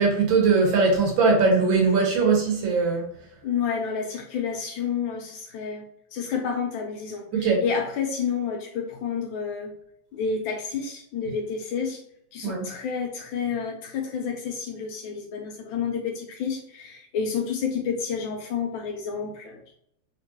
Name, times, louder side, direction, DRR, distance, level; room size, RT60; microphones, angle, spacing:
voice 1, 0.0-3.0 7.3-7.6 12.4-12.7, right 4 dB, 65° right, 1.6 m, -20 dB
voice 2, 3.4-5.8 6.1-9.7 10.1-12.0 12.3-19.6, left 6 dB, 75° left, 1.2 m, -30 dB
3.7 x 2.9 x 2.8 m
omnidirectional pair, 2.4 m